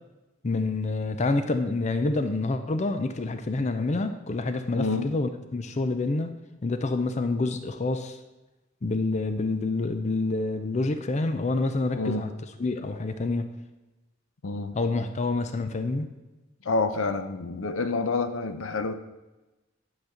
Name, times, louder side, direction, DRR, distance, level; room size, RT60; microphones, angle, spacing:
voice 1, 0.4-6.3 6.6-8.2 8.8-12.3 12.6-13.5 14.7-16.1, left 3 dB, 35° left, 8 dB, 0.5 m, -27 dB
voice 2, 4.7-5.1 12.0-12.2 14.4-14.7 16.6-18.9, left 3 dB, 75° left, 10 dB, 0.6 m, -28 dB
10.5 x 4.1 x 6.4 m, 1.1 s
head